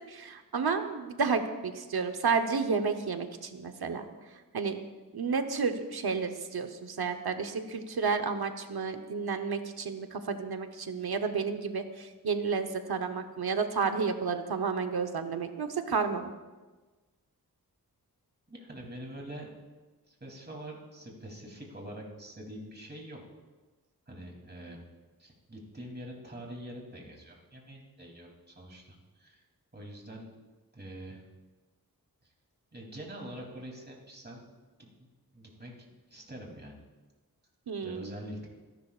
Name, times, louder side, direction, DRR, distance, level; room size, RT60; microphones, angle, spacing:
voice 1, 0.1-4.1 4.5-4.8 5.1-16.3 37.7-38.1, right 5 dB, 85° right, 6 dB, 1.1 m, -31 dB
voice 2, 18.5-19.6 20.1-23.2 24.1-24.8 25.2-29.4 29.7-30.3 30.7-31.2 32.7-34.4 34.8-35.1 35.3-36.8 37.8-38.5, right 1 dB, 30° right, -1 dB, 3.1 m, -45 dB
26.5 x 11.5 x 2.5 m, 1.3 s
wide cardioid pair, 85°, 37 cm